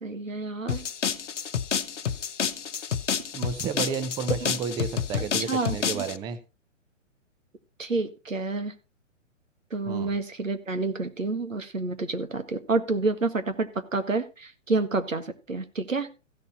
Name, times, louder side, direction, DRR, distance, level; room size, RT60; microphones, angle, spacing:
voice 1, 0.0-0.8 4.4-4.5 5.4-6.0 7.8-8.8 9.7-16.1, right 3 dB, 80° right, 8 dB, 1.9 m, -29 dB
sound 1, 0.7-6.2, left 7 dB, 65° left, 1.0 m, -29 dB
voice 2, 3.3-6.4 9.9-10.1, right 6 dB, 10° right, 11 dB, 0.6 m, -32 dB
15.5 x 6.8 x 4.2 m, 0.30 s
figure-of-eight pair, 120°, 38 cm